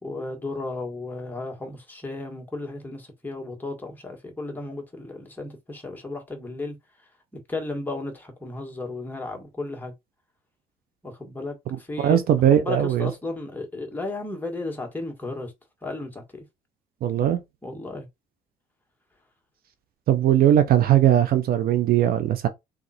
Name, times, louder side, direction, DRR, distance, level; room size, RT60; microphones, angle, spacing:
voice 1, 0.0-6.8 7.3-9.9 11.0-12.2 12.5-15.5 15.8-16.4 17.6-18.1, left 2 dB, 10° left, 1.8 m, -34 dB
voice 2, 12.0-13.1 17.0-17.4 20.1-22.5, right 11 dB, 60° right, 0.7 m, -19 dB
3.8 x 2.8 x 4.4 m
cardioid pair, 110°, 17 cm